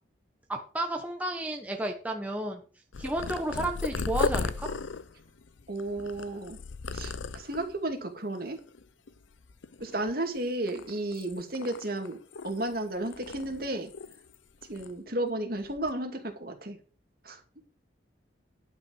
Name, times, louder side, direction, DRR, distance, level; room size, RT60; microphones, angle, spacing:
voice 1, 0.5-2.6 3.0-4.7, right 1 dB, 10° right, 2 dB, 1.1 m, -32 dB
Purr, 2.9-7.8 8.4-8.8 9.1-10.3 10.7-12.8 13.1-14.4 14.6-14.9 15.6-15.9, left 4 dB, 85° left, 0.6 m, -36 dB
voice 2, 5.7-6.6 6.9-8.6 9.8-12.2 12.4-13.9 14.7-16.8 17.2-17.4, right 1 dB, 50° right, 4 dB, 2.3 m, -33 dB
11.0 x 6.0 x 6.3 m, 0.37 s
head